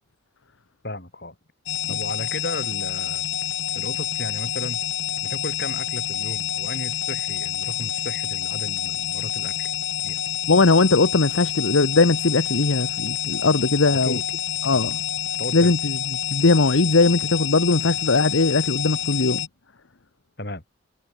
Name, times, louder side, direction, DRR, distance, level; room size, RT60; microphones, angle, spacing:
voice 1, 0.8-1.4 1.9-3.2 3.7-4.8 5.2-9.7 10.0-10.2 13.8-14.2 14.7-14.9 15.4-15.7 20.4-20.6, left 1 dB, 55° left, 7.6 m, -34 dB
sound 1, 1.7-19.5, left 10 dB, 70° left, 2.6 m, -28 dB
voice 2, 10.5-14.2 14.6-15.0 15.5-16.0 16.3-19.5, left 3 dB, 90° left, 1.1 m, -19 dB
head